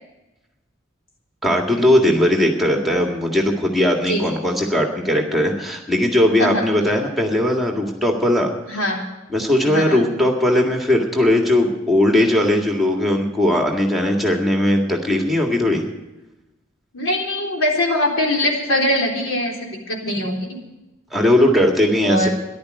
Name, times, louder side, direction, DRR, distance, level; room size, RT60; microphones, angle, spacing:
voice 1, 1.4-8.5 9.3-15.8 21.1-22.3, left 1 dB, ahead, 1 dB, 1.9 m, -18 dB
voice 2, 4.1-4.4 6.4-6.7 8.7-9.0 9.6-10.0 16.9-20.5 22.0-22.3, left 1 dB, 85° left, -1 dB, 3.8 m, -22 dB
14.0 x 11.5 x 6.5 m, 1.0 s
head